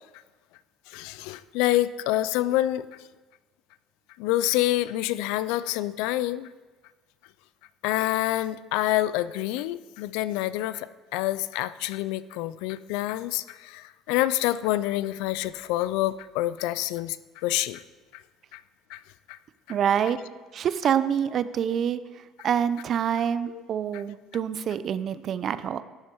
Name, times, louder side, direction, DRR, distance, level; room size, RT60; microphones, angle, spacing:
voice 1, 0.9-2.9 4.2-6.5 7.8-17.8 18.1-18.2 18.5-18.6 18.9-19.0 19.3-19.4 19.7-19.8 23.5-23.6, left 15 dB, 80° left, 16 dB, 0.4 m, -27 dB
voice 2, 19.7-20.2 20.5-22.0 22.4-25.8, right 8 dB, 50° right, 14 dB, 0.5 m, -26 dB
12.0 x 7.6 x 4.6 m, 1.3 s
supercardioid pair, 100°, 0 cm